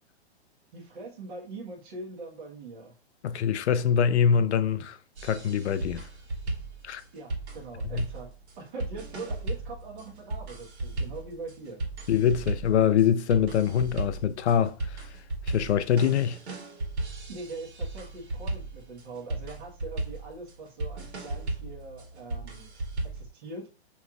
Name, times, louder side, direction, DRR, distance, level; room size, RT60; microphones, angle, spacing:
voice 1, 0.7-2.9 7.1-8.3 8.6-11.8 17.3-22.7 23.1-23.7, right 3 dB, 45° right, 1.4 m, -42 dB
voice 2, 3.2-5.0 5.2-6.0 6.8-7.0 7.8-8.1 12.1-15.1 15.5-16.4, left 8 dB, 80° left, 0.6 m, -24 dB
sound 1, 5.2-23.3, right 2 dB, 80° right, 1.9 m, -36 dB
5.5 x 3.1 x 2.4 m
hypercardioid pair, 160°, 33 cm